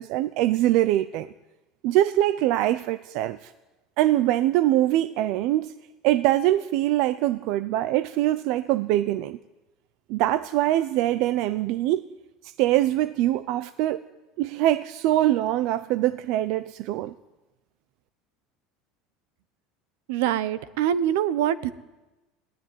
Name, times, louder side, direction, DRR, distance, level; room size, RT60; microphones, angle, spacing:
voice 1, 0.0-1.3 1.8-3.5 4.0-5.7 6.0-9.4 10.1-12.0 12.4-14.1 14.4-17.1, right 14 dB, 60° right, 0.6 m, -23 dB
voice 2, 20.1-21.7, right 10 dB, 80° right, 1.1 m, -24 dB
21.0 x 16.5 x 9.4 m
supercardioid pair, 145°, 0 cm